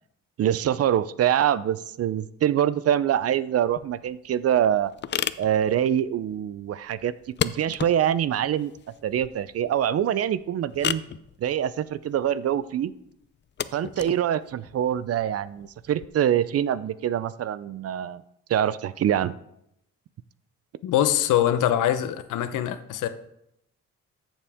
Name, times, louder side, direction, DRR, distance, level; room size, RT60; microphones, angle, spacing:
voice 1, 0.4-4.9 5.4-7.1 7.4-8.7 9.0-11.0 11.4-12.9 13.7-18.2 18.5-19.3, right 10 dB, 55° right, 17 dB, 0.5 m, -24 dB
sound 1, 3.6-16.1, left 9 dB, 40° left, 0.5 m, -36 dB
voice 2, 20.8-23.1, left 11 dB, 80° left, 11 dB, 0.9 m, -23 dB
13.5 x 7.3 x 3.6 m, 0.78 s
cardioid pair, 90°, 30 cm